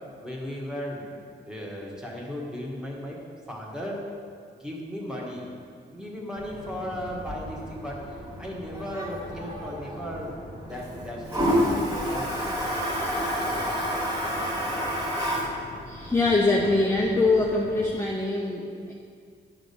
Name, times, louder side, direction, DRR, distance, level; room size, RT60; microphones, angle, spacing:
voice 1, 0.2-1.1 1.4-3.2 3.5-4.0 4.6-5.5 5.9-8.0 8.4-10.3 10.7-12.5, equal, 5° right, -3 dB, 1.7 m, -36 dB
Toilet flush, 6.4-17.9, equal, 20° right, 2.3 m, -30 dB
voice 2, 15.9-18.9, left 2 dB, 15° left, -2 dB, 0.8 m, -23 dB
11.0 x 3.9 x 6.8 m, 2.2 s
wide cardioid pair, 130°, 19 cm